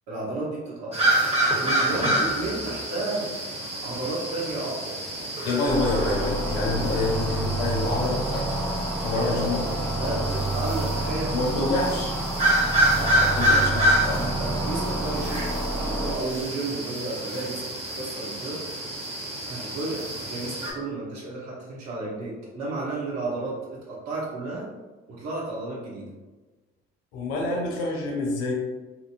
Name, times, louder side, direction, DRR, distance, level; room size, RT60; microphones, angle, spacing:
voice 1, 0.1-1.1 1.6-3.3 3.8-5.0 9.1-11.5 13.0-18.6 18.9-19.1 19.5-24.7 25.1-26.1, right 2 dB, 60° right, -5 dB, 0.9 m, -33 dB
sound 1, 0.9-20.7, right 1 dB, 20° right, 1.1 m, -28 dB
voice 2, 5.4-8.6 9.0-9.7 10.0-10.1 11.3-12.1 13.4-14.2 27.1-28.5, left 2 dB, 80° left, 0 dB, 0.6 m, -27 dB
sound 2, 5.7-16.1, right 2 dB, 5° left, 0.5 m, -29 dB
2.7 x 2.6 x 2.5 m, 1.3 s
hypercardioid pair, 45°, 31 cm